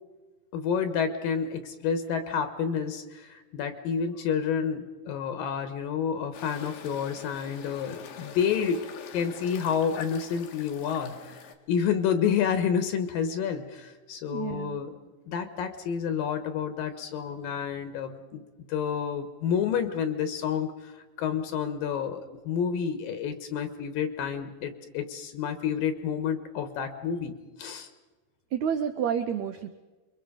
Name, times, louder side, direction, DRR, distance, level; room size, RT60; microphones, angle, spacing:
voice 1, 0.5-8.8 9.1-14.9 15.3-18.4 18.7-20.9 21.2-27.3 27.6-27.9, left 7 dB, 75° left, 8 dB, 2.9 m, -29 dB
sound 1, 6.3-11.6, left 7 dB, 90° left, 3.5 m, -44 dB
voice 2, 14.3-14.8 28.5-29.7, right 8 dB, 70° right, 8 dB, 1.8 m, -29 dB
27.5 x 23.5 x 5.1 m, 1.2 s
omnidirectional pair, 4.3 m